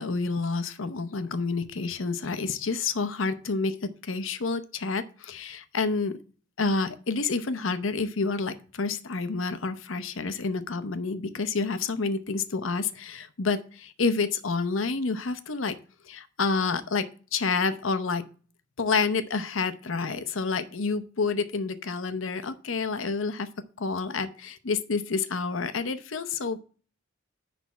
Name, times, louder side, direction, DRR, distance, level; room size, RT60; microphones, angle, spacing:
voice 1, 0.0-6.2 6.6-15.8 16.0-18.2 18.8-23.5 23.8-26.6, left 4 dB, 85° left, 11 dB, 0.8 m, -29 dB
10.5 x 3.5 x 7.2 m, 0.40 s
head